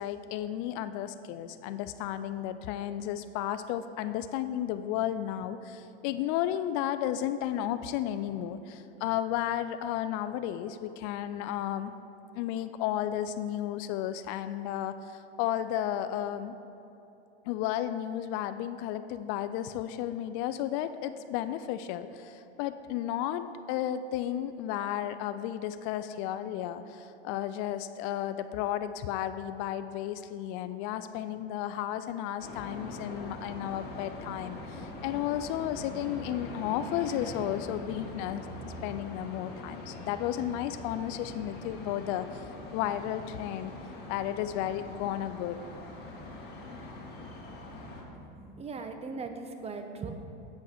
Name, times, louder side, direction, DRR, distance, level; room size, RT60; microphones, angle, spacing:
voice 1, 0.0-11.9 12.3-16.5 17.5-38.5 38.8-43.7 44.1-45.6, left 11 dB, 55° left, 11 dB, 0.5 m, -33 dB
sound 1, 32.4-48.0, left 1 dB, 35° left, 1.9 m, -43 dB
voice 2, 48.1-50.1, right 4 dB, 20° right, 6 dB, 0.8 m, -39 dB
8.3 x 7.8 x 5.0 m, 2.9 s
supercardioid pair, 110°, 29 cm